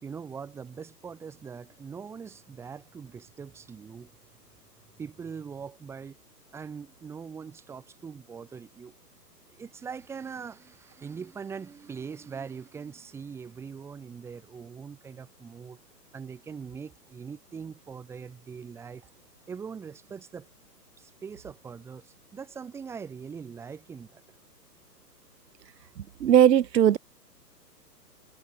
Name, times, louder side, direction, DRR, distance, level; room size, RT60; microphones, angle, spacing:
voice 1, 0.0-4.1 5.0-6.1 6.5-9.0 9.5-15.8 16.1-19.1 19.5-20.5 21.0-24.2, right 6 dB, 5° right, 2.6 m, -42 dB
voice 2, 26.2-27.0, right 10 dB, 80° right, 1.0 m, -18 dB
hypercardioid pair, 175°, 49 cm